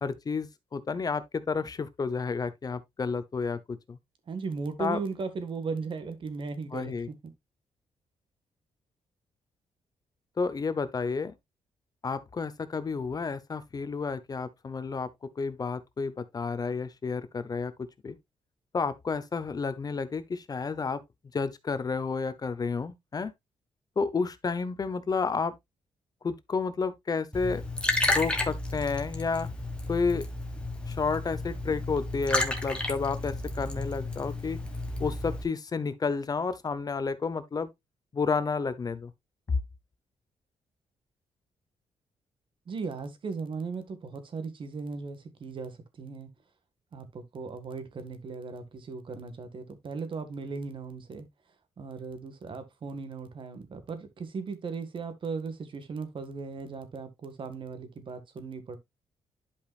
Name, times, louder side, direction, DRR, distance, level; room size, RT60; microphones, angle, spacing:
voice 1, 0.0-4.0 4.8-5.0 6.7-7.1 10.4-11.3 12.0-15.1 15.4-17.7 18.0-18.2 18.7-21.0 21.3-23.3 24.0-25.5 26.2-27.6 28.1-29.5 29.9-30.2 30.9-34.6 35.0-37.7 38.1-39.1, left 4 dB, 35° left, 0.9 m, -31 dB
voice 2, 4.3-7.1 42.7-46.3 46.9-51.3 51.8-58.8, right 4 dB, 50° right, 1.6 m, -37 dB
Liquid, 27.3-35.4, left 2 dB, 10° left, 1.6 m, -32 dB
11.0 x 5.3 x 2.4 m
cardioid pair, 105°, 11 cm